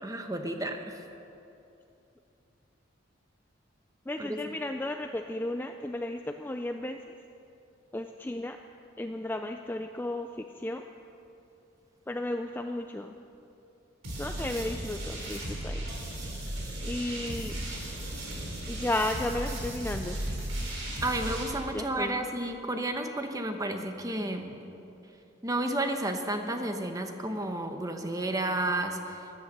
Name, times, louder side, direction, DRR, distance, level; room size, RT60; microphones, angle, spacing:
voice 1, 0.0-1.0 4.2-4.4 21.0-24.6 25.4-29.2, right 1 dB, 15° right, 5 dB, 0.9 m, -32 dB
voice 2, 4.1-7.0 7.9-8.6 9.0-10.8 12.1-13.2 14.2-15.8 16.8-17.6 18.7-20.2 21.7-22.3, left 1 dB, 10° left, 5 dB, 0.3 m, -34 dB
sound 1, 14.0-21.4, right 1 dB, 80° right, 4.0 m, -36 dB
15.0 x 12.0 x 6.6 m, 2.8 s
head